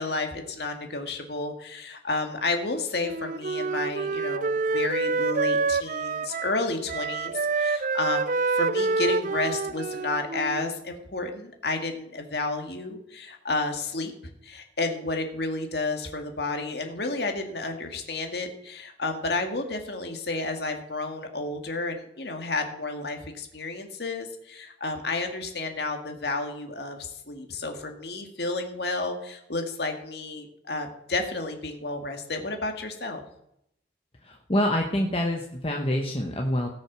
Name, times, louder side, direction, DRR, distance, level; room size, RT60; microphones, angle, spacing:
voice 1, 0.0-14.1 14.4-33.2, left 3 dB, 65° left, 4 dB, 1.9 m, -31 dB
Wind instrument woodwind instrument, 3.0-6.6 6.9-10.8, right 4 dB, 45° right, 0.4 m, -27 dB
voice 2, 34.2-36.7, left 1 dB, 30° left, 1 dB, 1.1 m, -26 dB
18.0 x 6.4 x 6.1 m, 0.77 s
head